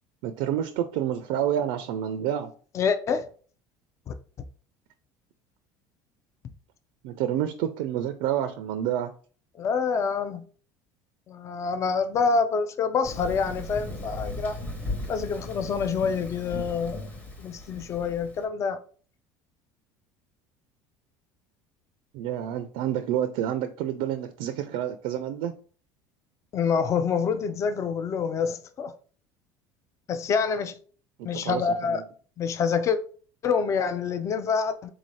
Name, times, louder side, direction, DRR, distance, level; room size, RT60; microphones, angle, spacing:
voice 1, 0.2-2.5 7.0-9.1 22.1-25.5 31.3-32.0, right 10 dB, 75° right, 0.4 m, -28 dB
voice 2, 2.7-3.3 4.1-4.2 9.6-10.4 11.3-14.6 15.1-17.1 17.4-18.8 26.5-28.9 30.1-30.8 31.2-32.0 32.4-33.0 33.4-34.9, left 5 dB, 35° left, 0.4 m, -26 dB
Thunder, 13.0-18.4, left 2 dB, 15° left, 0.9 m, -37 dB
3.7 x 2.6 x 3.1 m
supercardioid pair, 115°, 9 cm